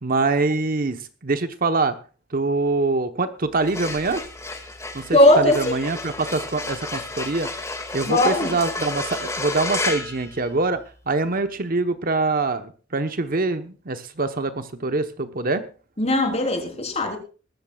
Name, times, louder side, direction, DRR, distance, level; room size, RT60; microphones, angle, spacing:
voice 1, 0.0-2.0 2.3-4.2 4.9-7.5 7.9-15.6, right 3 dB, 50° right, 9 dB, 1.0 m, -24 dB
sound 1, 3.5-11.0, left 2 dB, 15° left, 2.0 m, -32 dB
voice 2, 5.1-5.7 8.1-8.5 16.0-17.2, left 1 dB, 35° left, 3 dB, 3.8 m, -18 dB
21.0 x 13.5 x 2.4 m, 0.36 s
head